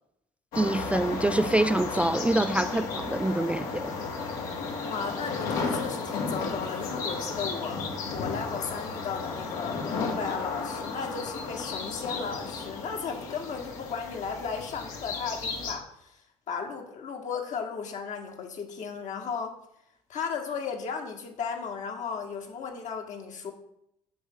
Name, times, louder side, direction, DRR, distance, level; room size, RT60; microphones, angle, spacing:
sound 1, 0.5-15.7, left 4 dB, 75° left, 1.6 m, -34 dB
voice 1, 0.6-4.0, right 1 dB, 10° right, 0.3 m, -26 dB
voice 2, 4.8-7.8 8.1-16.2 16.5-19.5 20.1-23.5, left 6 dB, 60° left, 1.7 m, -35 dB
7.9 x 3.6 x 6.6 m
hypercardioid pair, 65°, 14 cm